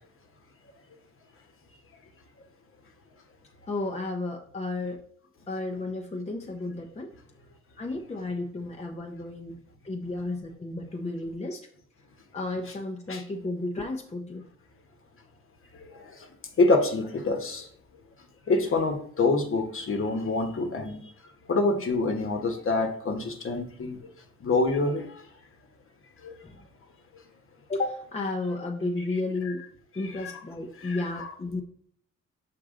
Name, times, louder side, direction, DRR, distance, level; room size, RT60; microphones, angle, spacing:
voice 1, 3.7-5.0 5.5-7.1 7.8-11.6 12.3-14.4 26.4-26.6 27.7-29.6 29.9-31.6, left 2 dB, 20° left, 0.8 m, -33 dB
voice 2, 15.7-16.3 16.6-17.7 18.5-21.1 21.5-24.1 24.4-25.2 26.2-26.4 29.4-29.5 30.2-30.4 30.8-31.3, left 3 dB, 45° left, 1.3 m, -26 dB
6.4 x 4.6 x 3.8 m
cardioid pair, 90°, 30 cm